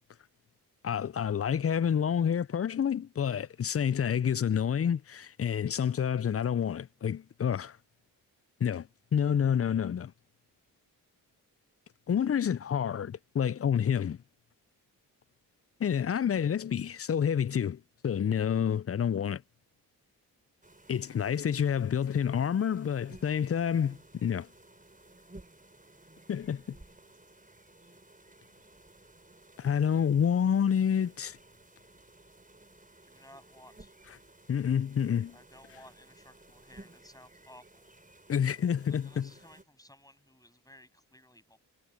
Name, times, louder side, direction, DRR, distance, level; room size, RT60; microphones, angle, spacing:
voice 1, 0.8-7.8 8.6-10.1 12.1-14.2 15.8-19.4 20.9-24.5 26.3-26.6 29.6-31.4 34.5-35.3 38.3-39.3, left 8 dB, 35° left, 0.5 m, -28 dB
sound 1, 20.6-39.6, right 2 dB, 20° right, 4.9 m, -56 dB
voice 2, 33.0-34.0 35.3-37.9 38.9-41.6, left 1 dB, 10° left, 7.7 m, -56 dB
supercardioid pair, 40°, 41 cm